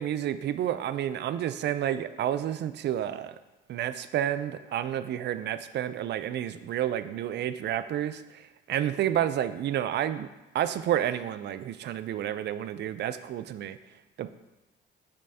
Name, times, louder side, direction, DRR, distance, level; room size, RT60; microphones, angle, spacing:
voice 1, 0.0-3.4 3.7-8.4 8.7-10.3 10.5-13.8 14.2-14.3, right 11 dB, 60° right, 12 dB, 0.4 m, -30 dB
7.0 x 5.3 x 2.8 m, 1.0 s
cardioid pair, 90°, 20 cm